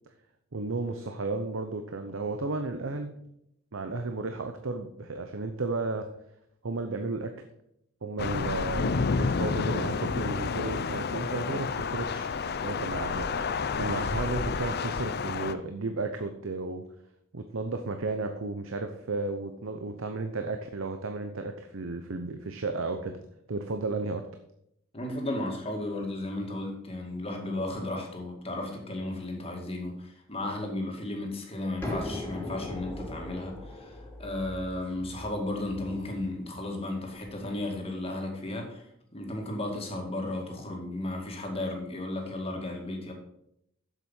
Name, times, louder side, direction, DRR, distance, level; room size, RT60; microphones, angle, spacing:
voice 1, 0.5-3.2 3.7-6.1 6.6-7.3 8.0-12.3 12.6-13.5 13.8-16.8 17.3-23.2 23.5-24.2, right 3 dB, 75° right, 6 dB, 0.8 m, -33 dB
Thunder / Rain, 8.2-15.5, left 5 dB, 55° left, 0.6 m, -30 dB
voice 2, 24.9-43.1, left 1 dB, 30° left, 1 dB, 2.2 m, -34 dB
sound 1, 31.8-37.4, left 1 dB, 10° left, 2.7 m, -39 dB
7.9 x 7.4 x 5.6 m, 0.76 s
head